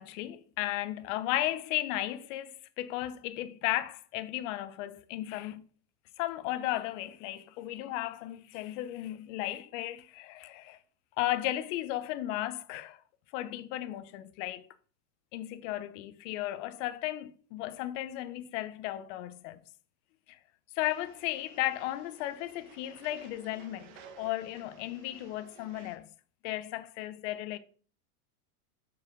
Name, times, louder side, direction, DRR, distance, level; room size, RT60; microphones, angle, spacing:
voice 1, 0.0-5.6 6.2-10.8 11.2-13.0 13.3-14.7 15.3-19.6 20.3-20.4 20.7-26.1 26.4-27.6, left 15 dB, 50° left, 0.6 m, -35 dB
sound 1, 20.8-26.0, right 7 dB, 45° right, 1.1 m, -55 dB
6.6 x 4.7 x 3.7 m
supercardioid pair, 140°, 47 cm